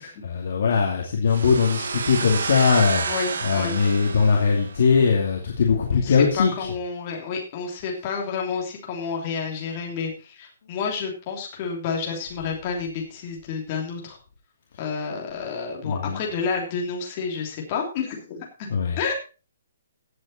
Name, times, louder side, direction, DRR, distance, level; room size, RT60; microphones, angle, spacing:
voice 1, 0.0-6.7 15.8-16.2 18.7-19.0, left 5 dB, 50° left, 0 dB, 2.5 m, -21 dB
sound 1, 1.3-5.0, right 5 dB, 75° right, 1.9 m, -30 dB
voice 2, 3.1-3.8 5.9-14.2 14.8-19.1, left 5 dB, 25° left, 0 dB, 3.1 m, -30 dB
16.0 x 7.7 x 4.3 m, 0.34 s
hypercardioid pair, 175°, 0 cm